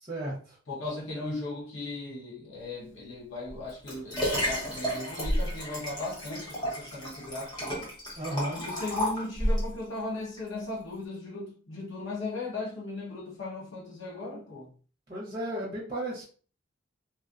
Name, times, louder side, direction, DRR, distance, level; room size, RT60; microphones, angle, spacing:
voice 1, 0.0-0.6 8.2-8.6 15.1-16.2, right 1 dB, 25° right, 0.9 m, -34 dB
voice 2, 0.7-7.9 8.6-14.7, left 2 dB, 85° left, 1.2 m, -37 dB
Liquid, 3.5-9.7 10.4-10.5, equal, 20° left, 1.0 m, -31 dB
3.0 x 2.8 x 2.5 m
head